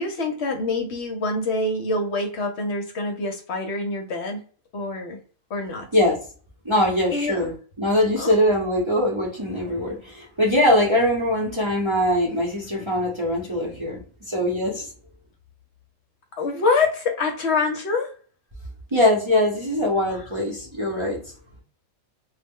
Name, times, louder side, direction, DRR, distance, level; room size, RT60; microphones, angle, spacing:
voice 1, 0.0-4.4 4.7-5.2 5.5-5.9 7.1-7.5 8.2-8.3 16.4-18.1, left 3 dB, 65° left, 3 dB, 0.8 m, -25 dB
voice 2, 6.6-14.9 18.9-21.2, left 1 dB, 30° right, -4 dB, 0.7 m, -22 dB
2.3 x 2.0 x 3.5 m, 0.40 s
omnidirectional pair, 1.4 m